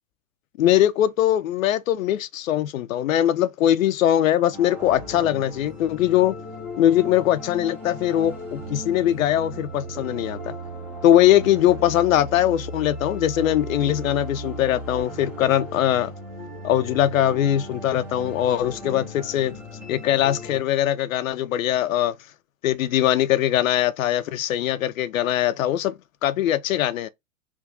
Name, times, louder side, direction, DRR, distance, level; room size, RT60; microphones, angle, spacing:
voice 1, 0.6-6.4 6.8-10.5 11.0-16.1 16.6-19.6 19.9-22.1 22.6-25.9 26.2-27.1, left 12 dB, 65° left, 0.5 m, -21 dB
sound 1, 4.5-20.6, equal, 5° right, 0.3 m, -36 dB
3.5 x 2.2 x 3.7 m
hypercardioid pair, 110°, 44 cm